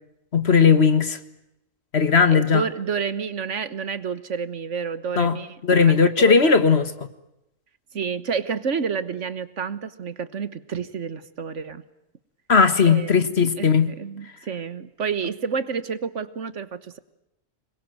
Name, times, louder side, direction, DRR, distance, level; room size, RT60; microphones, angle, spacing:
voice 1, 0.3-1.2 1.9-2.6 5.2-5.4 5.6-7.1 12.5-13.9, left 5 dB, 55° left, 1.8 m, -17 dB
voice 2, 2.3-6.6 7.9-11.8 12.8-13.1 13.6-17.0, right 6 dB, 65° right, 1.6 m, -29 dB
25.5 x 22.0 x 9.3 m
omnidirectional pair, 1.3 m